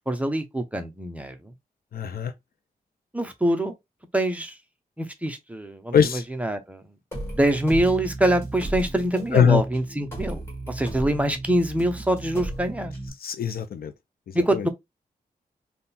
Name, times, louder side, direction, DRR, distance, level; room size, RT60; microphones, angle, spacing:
voice 1, 0.1-1.5 3.1-3.7 4.1-4.6 5.0-6.0 6.3-6.8 7.3-12.9 14.3-14.7, right 1 dB, 10° right, 0.7 m, -24 dB
voice 2, 1.9-2.3 5.9-6.2 9.3-9.6 13.2-13.9 14.4-14.7, left 7 dB, 75° left, 0.5 m, -21 dB
sound 1, 7.1-13.1, right 1 dB, 15° left, 1.6 m, -34 dB
3.7 x 2.3 x 4.2 m
wide cardioid pair, 125°, 16 cm